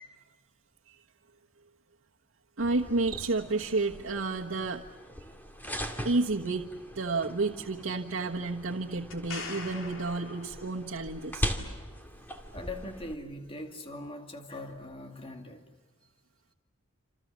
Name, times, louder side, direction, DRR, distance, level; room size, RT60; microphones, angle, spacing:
sound 1, 2.6-13.1, equal, 10° left, 2.5 m, -40 dB
voice 1, 2.6-4.8 6.0-6.7 6.9-11.5, right 3 dB, 90° right, -1 dB, 1.3 m, -31 dB
Cricket, 2.9-3.7, right 9 dB, 50° right, 3.0 m, -44 dB
sound 2, 9.1-11.1 14.8-14.9, left 4 dB, 85° left, 3.6 m, -43 dB
voice 2, 12.5-15.6, left 1 dB, 30° left, 4 dB, 2.3 m, -41 dB
28.0 x 28.0 x 7.4 m, 1.3 s
head